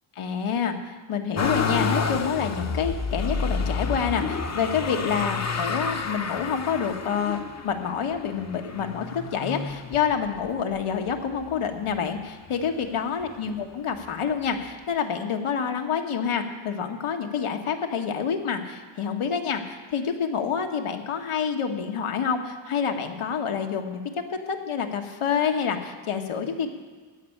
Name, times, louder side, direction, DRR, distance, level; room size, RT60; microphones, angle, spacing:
voice 1, 0.2-7.4 7.6-24.0 24.3-26.7, left 7 dB, 85° left, 5 dB, 1.3 m, -28 dB
Motor vehicle (road), 1.3-10.5 11.1-11.9 12.2-13.3 14.3-14.4, left 5 dB, 35° left, 0.7 m, -30 dB
15.0 x 5.5 x 9.9 m, 1.5 s
wide cardioid pair, 110°, 49 cm